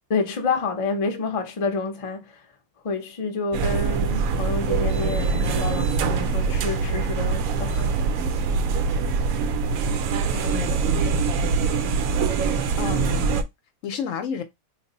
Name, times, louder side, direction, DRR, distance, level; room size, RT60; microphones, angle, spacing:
voice 1, 0.1-2.5 2.8-7.9, left 4 dB, 35° left, 0.5 m, -28 dB
sound 1, 3.5-13.4, right 5 dB, 80° right, 1.0 m, -23 dB
voice 2, 10.3-11.0 12.8-13.3 13.8-14.4, left 7 dB, 70° left, 0.9 m, -31 dB
3.3 x 2.1 x 3.8 m
omnidirectional pair, 1.5 m